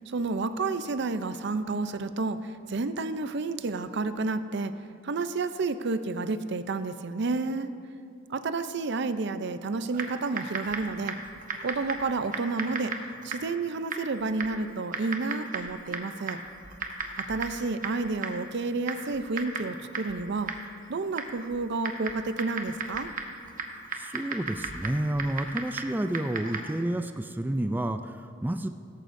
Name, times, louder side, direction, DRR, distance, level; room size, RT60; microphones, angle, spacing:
voice 1, 0.1-4.7 5.0-7.7 8.3-11.2 11.6-12.9 13.2-16.4 17.2-20.5 20.9-23.1, right 3 dB, 60° right, 11 dB, 0.5 m, -30 dB
Typing, 9.9-26.8, right 4 dB, 45° right, 1.0 m, -37 dB
voice 2, 23.9-28.7, right 1 dB, 10° right, 7 dB, 0.3 m, -30 dB
16.5 x 14.0 x 2.6 m, 2.4 s
head